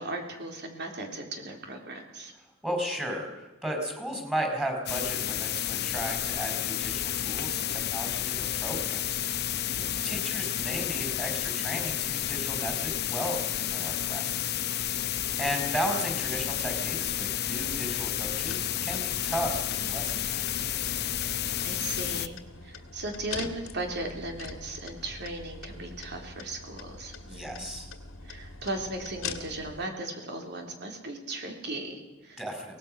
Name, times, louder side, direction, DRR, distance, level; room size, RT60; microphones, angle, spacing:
voice 1, 0.0-2.3 9.8-10.4 21.6-27.7 28.2-32.4, right 2 dB, 55° right, 3 dB, 3.7 m, -37 dB
voice 2, 2.6-9.2 10.0-14.6 15.4-20.4 27.3-27.9 32.4-32.8, equal, 5° right, 2 dB, 4.6 m, -35 dB
sound 1, 4.9-22.3, left 11 dB, 55° left, 0.8 m, -31 dB
sound 2, 17.5-29.8, left 4 dB, 80° left, 1.9 m, -43 dB
23.5 x 18.5 x 6.4 m, 1.1 s
head